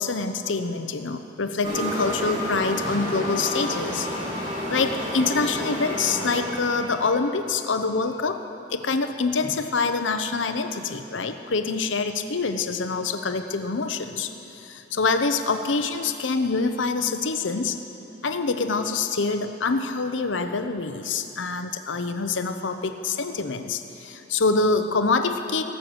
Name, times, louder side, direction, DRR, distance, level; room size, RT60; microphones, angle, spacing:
voice 1, 0.0-4.1 4.7-8.4 8.7-17.8 18.2-25.6, left 4 dB, 90° left, 8 dB, 0.8 m, -26 dB
sound 1, 1.6-7.1, equal, 25° right, 2.7 m, -30 dB
18.0 x 6.6 x 7.9 m, 2.9 s
head